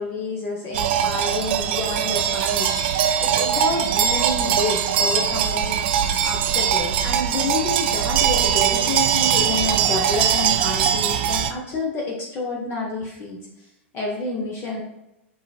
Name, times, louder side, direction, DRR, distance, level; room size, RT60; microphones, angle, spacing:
voice 1, 0.0-13.4 13.9-14.8, left 3 dB, 35° left, -2 dB, 0.8 m, -29 dB
sound 1, 0.7-11.5, right 9 dB, 55° right, 0.4 m, -21 dB
5.8 x 2.7 x 2.4 m, 0.92 s
figure-of-eight pair, 95°, 7 cm